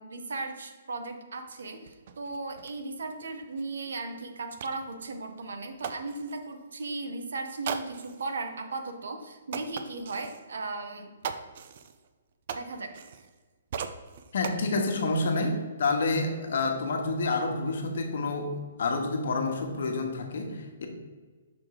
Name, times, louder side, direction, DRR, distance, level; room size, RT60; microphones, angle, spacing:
voice 1, 0.0-11.1 12.6-12.9, right 3 dB, 80° right, 6 dB, 0.9 m, -36 dB
sound 1, 1.5-1.6 1.8-6.5 7.6-8.3 8.9-9.0 9.5-10.4 11.2-13.4 13.7-14.6, right 7 dB, 45° right, 0.4 m, -39 dB
voice 2, 14.3-20.9, left 3 dB, 60° left, 3 dB, 1.1 m, -28 dB
6.2 x 3.6 x 4.7 m, 1.4 s
hypercardioid pair, 165°, 0 cm